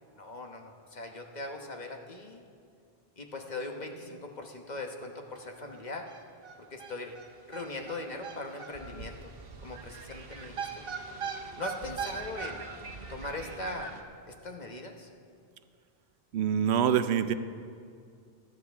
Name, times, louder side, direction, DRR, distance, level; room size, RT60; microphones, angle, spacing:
voice 1, 0.1-2.4 3.2-6.1 6.7-7.1 7.5-9.3 9.6-10.8 11.6-12.7 13.1-13.9 14.3-15.1, left 2 dB, 45° left, 3 dB, 1.2 m, -40 dB
sound 1, 5.4-5.5 5.7-5.8 6.1-14.0, right 5 dB, 65° right, 1.1 m, -40 dB
voice 2, 16.3-17.3, right 8 dB, 85° right, 12 dB, 0.9 m, -25 dB
18.5 x 12.5 x 3.5 m, 2.2 s
omnidirectional pair, 1.1 m